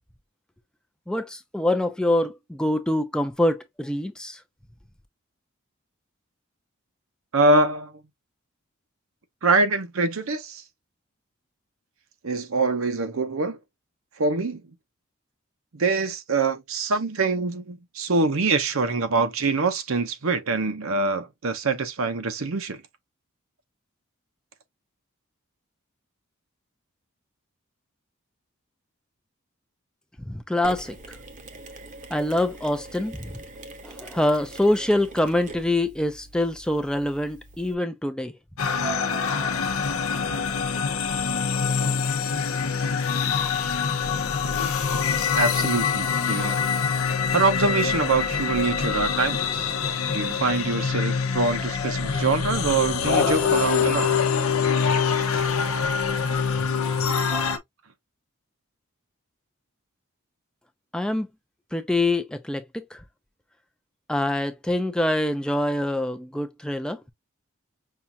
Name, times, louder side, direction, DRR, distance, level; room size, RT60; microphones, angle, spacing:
voice 1, 1.1-4.4 30.2-31.2 32.1-33.4 33.8-38.3 60.9-61.3 61.7-63.0 64.1-67.0, left 1 dB, 5° left, 0.3 m, -25 dB
voice 2, 7.3-7.9 9.4-10.6 12.2-13.6 14.2-14.6 15.7-22.8 45.3-46.7 47.3-49.7 50.1-54.1, right 3 dB, 75° right, 0.8 m, -24 dB
Mechanisms, 30.6-37.7, right 2 dB, 35° right, 0.7 m, -43 dB
sound 1, 38.6-57.6, left 6 dB, 85° left, 0.7 m, -25 dB
5.6 x 2.4 x 2.7 m
head